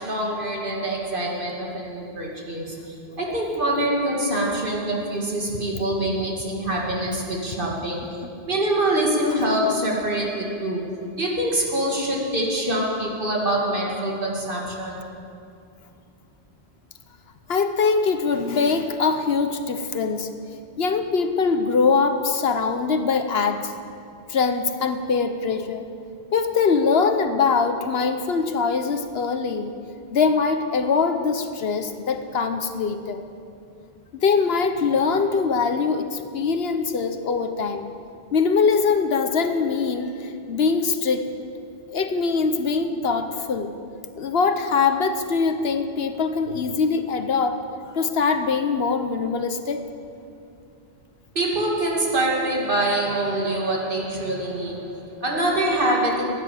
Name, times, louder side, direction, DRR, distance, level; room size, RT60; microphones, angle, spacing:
voice 1, 0.0-8.2 8.5-15.1 51.3-56.2, right 1 dB, 55° right, -2 dB, 2.6 m, -25 dB
voice 2, 17.5-20.3 20.8-23.7 24.3-25.9 26.3-29.7 30.1-33.2 34.2-37.9 38.3-41.2 41.9-43.7 44.2-47.6 47.9-49.8, left 5 dB, 70° left, 8 dB, 1.2 m, -22 dB
16.0 x 9.9 x 8.5 m, 2.5 s
omnidirectional pair, 1.1 m